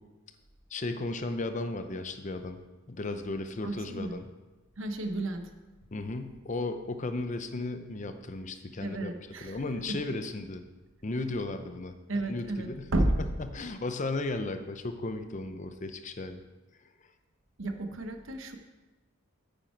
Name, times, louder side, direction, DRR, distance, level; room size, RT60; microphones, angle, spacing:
voice 1, 0.7-2.6 2.9-4.3 5.9-9.1 9.4-10.6 11.0-11.9 12.3-12.9 13.5-16.4, left 2 dB, 35° left, 8 dB, 0.6 m, -35 dB
voice 2, 3.6-4.2 4.8-5.5 8.8-9.6 9.9-10.0 12.1-13.3 17.6-18.6, right 1 dB, 65° right, 6 dB, 1.0 m, -32 dB
9.1 x 8.9 x 4.5 m, 1.2 s
head